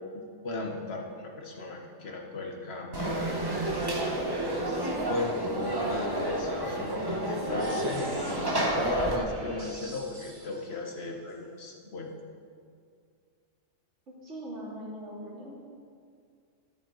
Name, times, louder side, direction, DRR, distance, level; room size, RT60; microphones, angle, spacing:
voice 1, 0.0-3.2 4.0-12.1, left 2 dB, 55° left, 1 dB, 1.6 m, -37 dB
Conversation / Crowd, 2.9-9.2, right 1 dB, 20° right, 1.2 m, -30 dB
sound 1, 7.6-11.3, right 1 dB, 50° right, 3.7 m, -48 dB
voice 2, 14.1-15.5, equal, 70° right, -5 dB, 3.1 m, -41 dB
14.0 x 8.8 x 4.7 m, 2.3 s
omnidirectional pair, 1.3 m